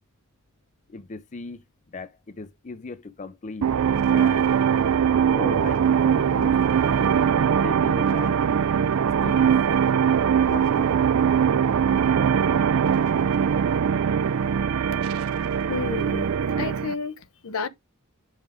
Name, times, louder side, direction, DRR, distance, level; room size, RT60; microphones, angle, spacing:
voice 1, 0.9-3.7 4.1-4.5 5.3-6.6 7.6-8.5 9.2-9.5 10.5-11.1, left 3 dB, 35° left, 0.5 m, -38 dB
sound 1, 3.6-16.9, right 7 dB, 70° right, 0.4 m, -21 dB
voice 2, 15.7-17.7, left 4 dB, 70° left, 0.7 m, -31 dB
5.8 x 5.6 x 3.5 m
head